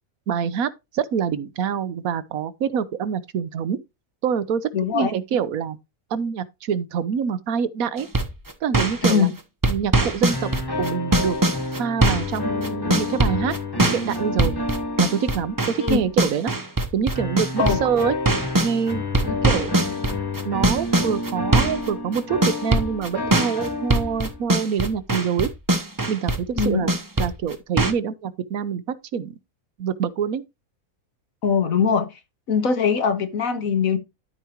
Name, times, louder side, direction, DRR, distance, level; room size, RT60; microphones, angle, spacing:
voice 1, 0.3-3.8 4.2-5.8 6.1-8.1 8.6-9.3 9.7-10.5 10.8-11.4 11.7-13.5 13.9-14.6 15.0-16.5 16.9-18.1 18.6-19.0 19.4-20.0 20.4-25.5 26.1-26.9 27.2-29.3 29.8-30.4, right 7 dB, 85° right, 1.3 m, -25 dB
voice 2, 4.7-5.1 9.0-9.3 15.8-16.0 17.6-17.8 19.2-19.3 26.6-26.8 31.4-32.1 32.5-34.0, left 6 dB, 75° left, 1.7 m, -21 dB
sound 1, 8.0-9.2 9.6-12.4 12.6-18.7 19.1-27.9, right 2 dB, 15° right, 0.8 m, -21 dB
sound 2, 10.3-16.1 17.1-24.5, left 2 dB, 15° left, 1.4 m, -29 dB
13.0 x 5.0 x 3.0 m
omnidirectional pair, 1.5 m